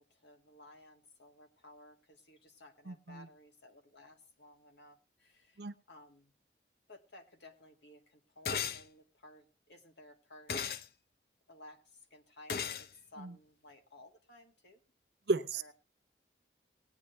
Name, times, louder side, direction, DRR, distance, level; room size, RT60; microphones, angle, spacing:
voice 1, 0.0-6.3 6.9-10.6 11.5-14.8 15.5-15.7, left 1 dB, 80° left, 5 dB, 1.9 m, -57 dB
voice 2, 2.9-3.3 5.6-5.7 13.2-13.3 15.3-15.7, right 3 dB, 75° right, 12 dB, 0.7 m, -34 dB
sound 1, 8.4-8.8 10.5-10.8 12.5-12.9, left 7 dB, 55° left, 0.5 m, -35 dB
18.5 x 9.6 x 3.3 m, 0.31 s
head